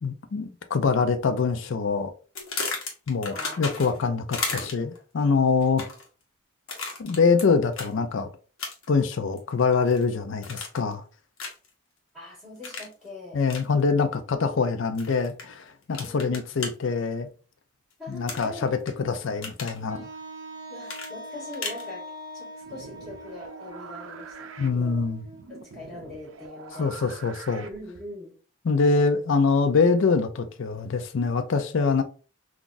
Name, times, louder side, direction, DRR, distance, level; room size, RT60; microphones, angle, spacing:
voice 1, 0.0-2.1 3.1-5.9 7.0-8.3 8.9-11.0 13.3-17.3 18.1-20.1 24.6-25.2 26.8-27.6 28.6-32.0, left 4 dB, 65° left, 0.4 m, -24 dB
sound 1, 2.4-4.0 4.3-5.0 5.6-6.1 6.7-7.4 7.7-7.9 8.6-9.0 9.4-10.0 10.4-10.9 11.4-11.7 12.6-12.9 13.5-13.7 15.0-15.4 15.9-16.7 18.3-18.9 19.2-19.8 20.9-21.9, left 4 dB, 90° left, 0.9 m, -34 dB
voice 2, 3.3-4.1 12.1-13.4 16.0-16.4 18.0-18.7 20.7-25.1 25.5-26.9 27.6-28.4, left 2 dB, ahead, 1.7 m, -42 dB
Wind instrument woodwind instrument, 19.9-25.6, equal, 15° right, 1.0 m, -42 dB
sound 2, 22.6-28.2, right 5 dB, 70° right, 0.4 m, -45 dB
3.8 x 2.4 x 2.5 m
head